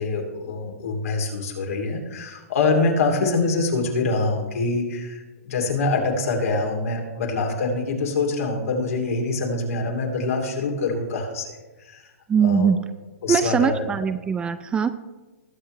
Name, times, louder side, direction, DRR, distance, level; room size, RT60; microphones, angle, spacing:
voice 1, 0.0-12.0 12.4-12.7 13.2-13.9, left 3 dB, 75° left, 1 dB, 2.9 m, -25 dB
voice 2, 12.3-12.8 13.3-14.9, right 7 dB, 10° right, 12 dB, 0.4 m, -21 dB
20.0 x 7.5 x 3.3 m, 1.2 s
hypercardioid pair, 145°, 8 cm